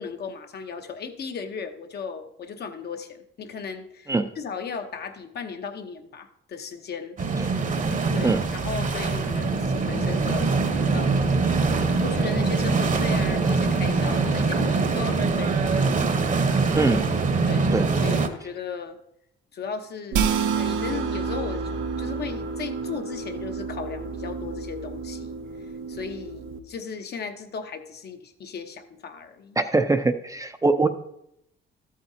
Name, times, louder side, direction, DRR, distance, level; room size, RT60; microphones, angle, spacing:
voice 1, 0.0-7.2 8.1-10.5 10.9-11.3 12.0-15.8 17.5-17.7 18.0-19.0 19.5-25.4 25.9-29.6, left 5 dB, 55° left, 6 dB, 0.9 m, -36 dB
sound 1, 7.2-18.3, right 4 dB, 40° right, 1.0 m, -23 dB
sound 2, 20.1-26.6, right 6 dB, 85° right, 0.7 m, -29 dB
voice 2, 29.6-30.9, right 3 dB, 15° right, 8 dB, 0.5 m, -22 dB
13.0 x 8.6 x 2.7 m, 0.77 s
cardioid pair, 90°, 20 cm